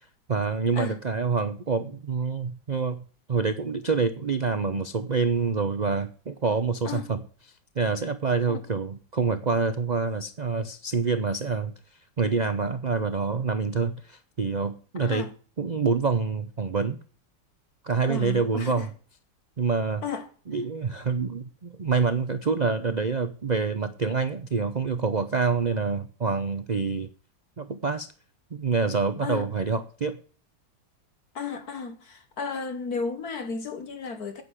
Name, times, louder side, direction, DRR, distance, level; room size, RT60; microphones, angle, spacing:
voice 1, 0.3-7.2 7.7-11.7 12.2-15.3 15.6-17.0 17.8-18.9 19.6-20.0 20.5-27.1 27.6-28.1 28.5-30.2, right 4 dB, 50° right, 0.5 m, -26 dB
voice 2, 18.1-18.9 20.0-20.3 29.2-29.5 31.4-34.4, left 5 dB, 60° left, 1.7 m, -33 dB
9.5 x 8.2 x 8.2 m
omnidirectional pair, 1.9 m